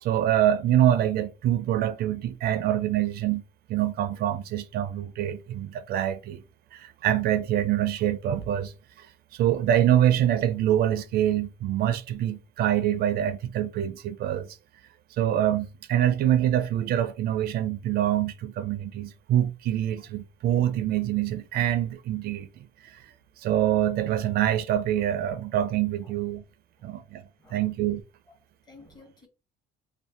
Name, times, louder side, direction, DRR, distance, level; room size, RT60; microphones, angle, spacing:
voice 1, 0.0-3.4 3.7-6.4 6.7-8.7 9.0-9.1 9.3-14.6 15.2-22.5 22.8-23.1 23.4-26.4 26.8-27.2 27.5-28.0, right 11 dB, 65° right, 0.4 m, -25 dB
voice 2, 26.8-27.1 27.4-27.7 28.3-28.4 28.6-29.3, left 3 dB, 25° left, 1.0 m, -53 dB
2.6 x 2.1 x 3.3 m
cardioid pair, 110°, 17 cm